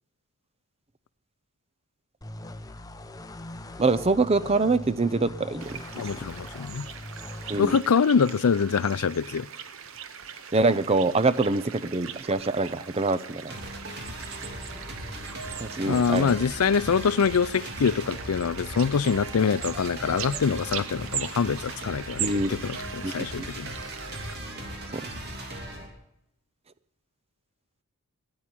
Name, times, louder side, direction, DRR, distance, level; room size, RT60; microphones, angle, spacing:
sound 1, 2.2-7.7, left 1 dB, 15° left, 0.7 m, -41 dB
voice 1, 3.8-6.1 7.5-7.8 10.5-13.5 15.6-16.3 22.2-22.6 23.0-23.5 24.9-25.1, right 3 dB, 30° right, 0.6 m, -25 dB
sound 2, 5.6-24.4, right 8 dB, 70° right, 0.9 m, -40 dB
voice 2, 6.0-6.9 7.6-9.5 15.8-23.8, left 6 dB, 85° left, 0.5 m, -25 dB
sound 3, 13.5-25.9, right 1 dB, 50° right, 2.8 m, -38 dB
15.5 x 9.6 x 8.9 m
head